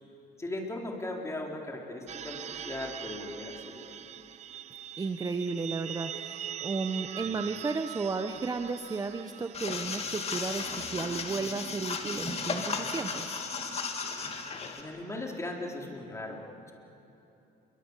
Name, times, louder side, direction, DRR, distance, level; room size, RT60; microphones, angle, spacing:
voice 1, 0.4-4.0 7.2-7.4 14.7-16.7, left 2 dB, 15° left, 0 dB, 4.1 m, -38 dB
sound 1, 2.1-14.6, right 9 dB, 40° right, 0.7 m, -43 dB
voice 2, 5.0-13.4, right 4 dB, 20° right, 7 dB, 1.0 m, -34 dB
sound 2, 9.5-14.8, left 5 dB, 40° left, 2.4 m, -35 dB
27.5 x 23.0 x 8.3 m, 3.0 s
cardioid pair, 110°, 17 cm